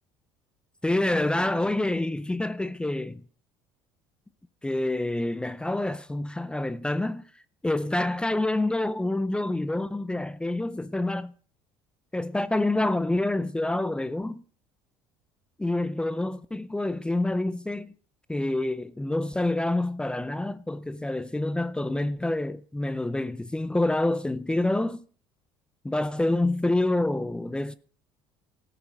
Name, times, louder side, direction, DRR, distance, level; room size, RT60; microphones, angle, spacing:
voice 1, 0.8-3.2 4.6-7.2 7.6-11.3 12.1-14.4 15.6-17.9 18.3-25.0 25.8-27.8, left 2 dB, 10° left, 0.5 m, -27 dB
14.0 x 6.7 x 6.0 m
supercardioid pair, 90°, 10 cm